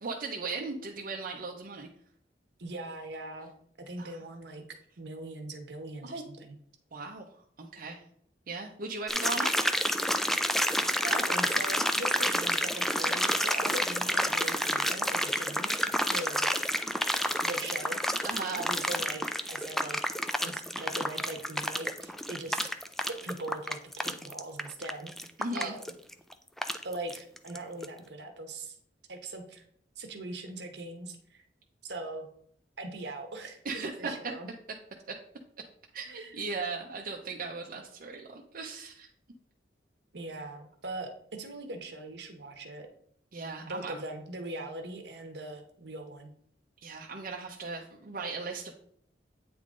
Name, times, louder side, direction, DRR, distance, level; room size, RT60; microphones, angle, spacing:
voice 1, 0.0-1.9 4.0-4.3 6.0-6.2 6.9-7.2 7.6-8.0 8.5-9.5 18.2-18.7 25.4-25.8 33.6-34.3 35.1-35.2 35.9-39.1 43.3-44.0 46.8-48.7, right 4 dB, 55° right, 0 dB, 0.7 m, -37 dB
voice 2, 2.6-3.5 3.8-4.6 5.0-6.5 11.0-15.7 16.0-16.5 17.4-18.0 18.5-20.0 20.4-22.6 23.0-25.1 25.5-25.8 26.8-28.8 29.1-29.6 30.0-31.4 31.8-32.3 32.8-34.5 36.0-36.4 40.1-42.9 43.6-46.3, right 2 dB, 75° right, 5 dB, 1.1 m, -40 dB
sound 1, 9.1-27.6 27.8-27.9, equal, ahead, 0.3 m, -29 dB
8.6 x 3.8 x 3.7 m, 0.65 s
head